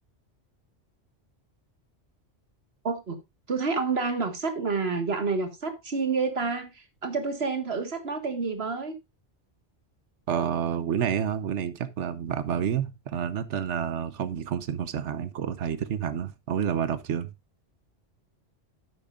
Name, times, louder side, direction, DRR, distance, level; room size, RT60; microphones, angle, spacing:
voice 1, 2.8-3.2 3.5-9.0, right 4 dB, 60° right, 2.0 m, -29 dB
voice 2, 10.3-17.3, right 8 dB, 85° right, 1.2 m, -29 dB
10.5 x 8.8 x 2.5 m
omnidirectional pair, 1.2 m